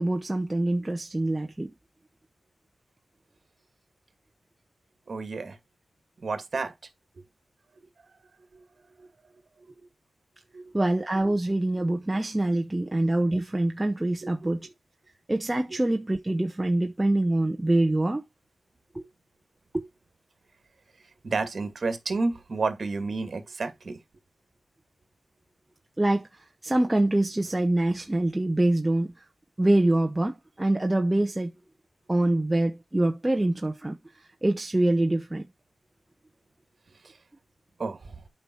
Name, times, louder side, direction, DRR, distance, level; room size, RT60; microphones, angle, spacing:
voice 1, 0.0-1.7 10.7-14.6 15.3-18.2 18.9-19.0 19.7-19.8 26.0-26.3 26.6-29.1 29.6-31.5 32.1-34.0 34.4-35.4, right 1 dB, 15° right, 0.9 m, -25 dB
voice 2, 5.1-5.6 6.2-6.7 7.8-7.9 8.5-8.6 9.0-9.1 9.8-9.9 10.5-10.9 14.2-14.7 15.7-15.8 21.2-24.0 37.0-37.2 37.8-38.2, right 3 dB, 45° right, 2.3 m, -31 dB
9.0 x 5.7 x 4.6 m
wide cardioid pair, 130°, 0 cm